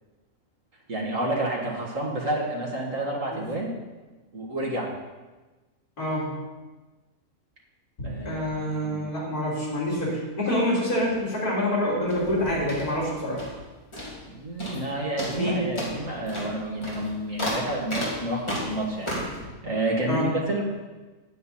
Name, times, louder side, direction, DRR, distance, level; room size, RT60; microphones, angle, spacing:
voice 1, 0.9-3.7 4.3-4.9 8.0-9.0 14.3-19.1 19.6-20.6, right 1 dB, 60° right, -2 dB, 2.2 m, -29 dB
voice 2, 6.0-6.3 8.0-13.4 15.4-15.6 20.1-20.2, left 1 dB, 80° left, -6 dB, 3.9 m, -26 dB
sound 1, 12.0-13.7 13.9-14.3 14.6-14.9 15.2-19.4, equal, 20° left, 2.6 m, -33 dB
9.5 x 9.1 x 4.3 m, 1.2 s
omnidirectional pair, 1.6 m